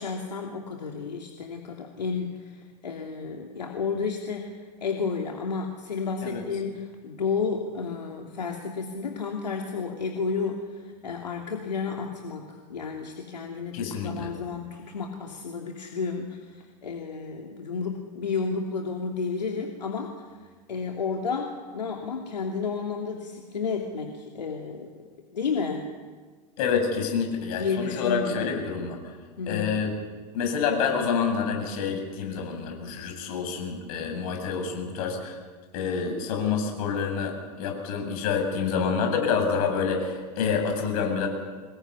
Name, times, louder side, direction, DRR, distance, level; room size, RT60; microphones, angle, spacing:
voice 1, 0.0-4.5 4.8-20.3 20.7-24.9 25.3-25.9 27.6-28.5 29.4-29.8, left 5 dB, 80° left, 1 dB, 3.0 m, -32 dB
voice 2, 13.7-14.3 26.6-29.0 29.5-29.9 30.3-35.4 35.7-41.3, left 6 dB, 60° left, 3 dB, 8.0 m, -27 dB
26.0 x 21.0 x 9.7 m, 1.5 s
figure-of-eight pair, 90°, 21 cm